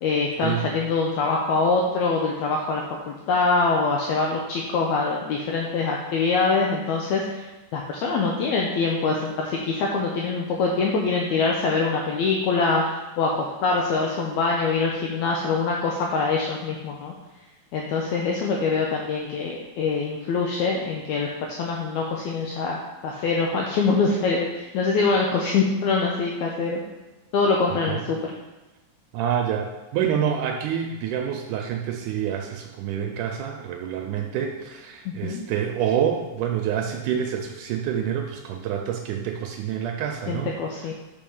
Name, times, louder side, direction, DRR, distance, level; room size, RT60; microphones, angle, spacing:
voice 1, 0.0-17.1 17.7-26.8 27.3-28.3 35.1-35.4 40.3-40.9, left 4 dB, 75° left, -1 dB, 1.9 m, -24 dB
voice 2, 29.1-40.5, right 9 dB, 80° right, 3 dB, 2.0 m, -27 dB
5.4 x 4.9 x 5.4 m, 1.1 s
omnidirectional pair, 3.7 m